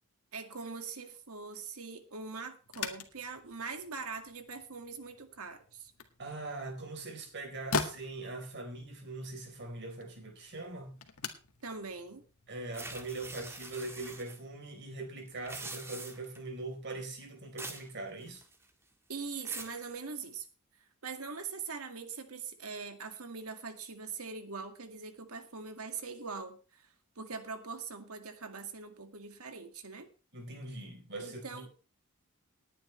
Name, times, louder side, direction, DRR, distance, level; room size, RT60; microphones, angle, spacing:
voice 1, 0.3-5.9 11.6-12.2 19.1-20.5 20.8-30.1 31.2-31.7, right 5 dB, 80° right, 2.0 m, -42 dB
sound 1, 2.6-13.1, left 4 dB, 75° left, 1.9 m, -43 dB
voice 2, 6.2-11.0 12.5-18.4 30.3-31.6, right 2 dB, 55° right, 4.0 m, -42 dB
sound 2, 12.7-14.4 15.3-16.4 17.6-17.9 18.2-18.7 19.1-19.8, right 2 dB, 10° right, 1.8 m, -44 dB
19.0 x 9.9 x 3.2 m
head